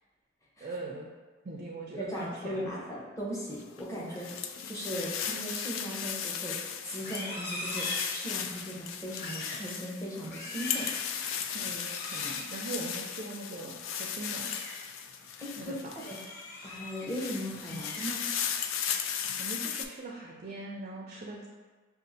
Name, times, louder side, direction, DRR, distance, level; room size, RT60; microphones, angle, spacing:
voice 1, 0.6-1.1 1.4-2.7 4.1-4.2 11.5-14.5 15.6-16.0 19.4-21.5, right 2 dB, 40° right, -1 dB, 0.4 m, -41 dB
voice 2, 2.0-4.3 4.7-10.9 15.4-16.2 16.6-18.2, equal, 15° left, -5 dB, 0.8 m, -38 dB
sound 1, 3.6-16.4 16.9-19.8, left 8 dB, 85° left, 0.3 m, -36 dB
Livestock farm animals working animals, 6.9-8.6 9.0-9.7 10.1-11.0 11.8-12.5 14.2-14.7 15.2-15.4 15.9-17.1 17.5-18.5 18.9-19.2 19.6-20.1, left 2 dB, 55° left, 0.8 m, -41 dB
6.1 x 2.4 x 2.7 m, 1.4 s
head